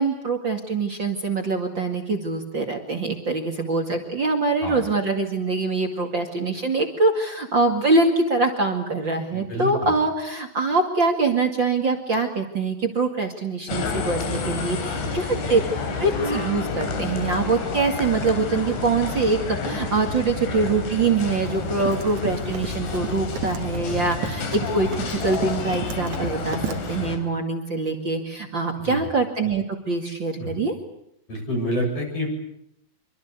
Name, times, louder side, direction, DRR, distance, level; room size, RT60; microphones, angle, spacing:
voice 1, 0.0-15.6 16.0-24.9 25.2-30.7, right 3 dB, 40° right, 3 dB, 1.9 m, -24 dB
voice 2, 4.6-4.9 9.3-9.9 15.0-15.3 23.9-24.1 28.8-29.1 30.4-30.6 31.3-32.3, equal, 35° left, 1 dB, 8.3 m, -29 dB
sound 1, 13.7-27.2, left 4 dB, 80° left, 5.9 m, -29 dB
Run, 21.2-27.0, right 8 dB, 55° right, 2.6 m, -35 dB
26.5 x 24.5 x 8.3 m, 0.76 s
omnidirectional pair, 5.2 m